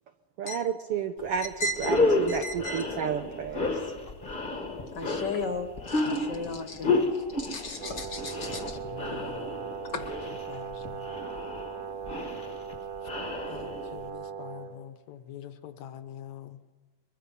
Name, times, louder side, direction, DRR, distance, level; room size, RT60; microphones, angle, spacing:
voice 1, 0.4-3.8, right 7 dB, 70° right, 7 dB, 1.5 m, -31 dB
sound 1, 1.2-1.4 1.7-14.1, left 2 dB, 20° left, 1.5 m, -31 dB
voice 2, 1.6-1.9 2.3-2.8 4.9-8.6 9.9-10.0 11.4-12.2, left 2 dB, 45° left, 6 dB, 1.7 m, -36 dB
Brass instrument, 7.8-14.8, right 7 dB, 25° right, 3.9 m, -39 dB
voice 3, 8.5-11.2 13.5-16.6, left 10 dB, 70° left, 10 dB, 2.1 m, -45 dB
23.0 x 22.5 x 5.5 m, 1.3 s
omnidirectional pair, 3.5 m